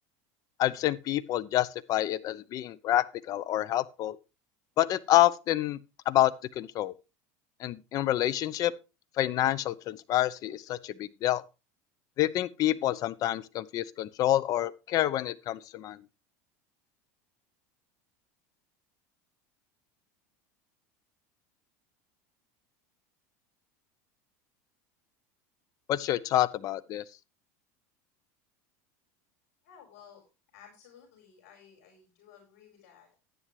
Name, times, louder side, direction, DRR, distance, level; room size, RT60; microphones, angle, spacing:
voice 1, 0.6-4.2 4.8-5.8 6.1-6.9 7.6-8.7 9.2-11.4 12.2-16.0 25.9-27.0, left 14 dB, 45° left, 0.8 m, -28 dB
voice 2, 29.6-30.2 30.5-33.2, left 8 dB, 75° left, 4.9 m, -55 dB
11.0 x 10.0 x 3.2 m
supercardioid pair, 115°, 8 cm